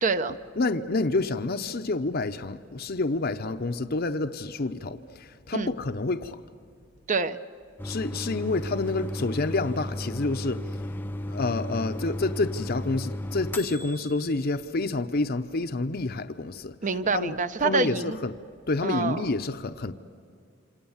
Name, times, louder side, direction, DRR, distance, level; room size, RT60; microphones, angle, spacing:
voice 1, 0.0-0.3 5.5-5.7 7.1-7.4 16.8-18.2 18.8-19.2, right 4 dB, 40° right, 0.8 m, -26 dB
voice 2, 0.6-6.4 7.8-10.6 11.3-16.7 17.1-17.3 17.6-18.3 18.7-19.9, left 3 dB, 50° left, 0.8 m, -28 dB
sound 1, 7.8-14.3, left 1 dB, 10° left, 0.6 m, -34 dB
28.0 x 26.5 x 7.3 m
head